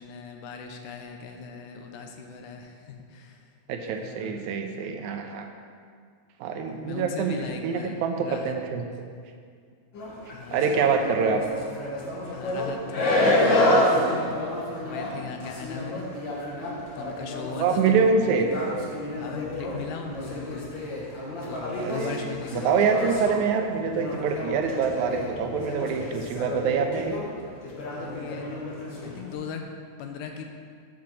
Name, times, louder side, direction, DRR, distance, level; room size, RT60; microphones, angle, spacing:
voice 1, 0.0-3.5 4.0-4.4 6.5-8.6 10.3-11.2 12.3-16.1 17.0-18.1 19.2-20.7 21.4-23.1 27.9-28.5 29.0-29.6 30.0-30.4, left 5 dB, 80° left, 4 dB, 2.2 m, -38 dB
voice 2, 3.7-5.5 6.4-7.4 7.6-8.8 10.5-11.4 17.6-18.5 21.8-27.1, right 5 dB, 80° right, 4 dB, 2.0 m, -25 dB
sound 1, 9.9-29.3, left 1 dB, 55° left, 1.3 m, -29 dB
7.3 x 4.8 x 6.1 m, 2.1 s
omnidirectional pair, 3.5 m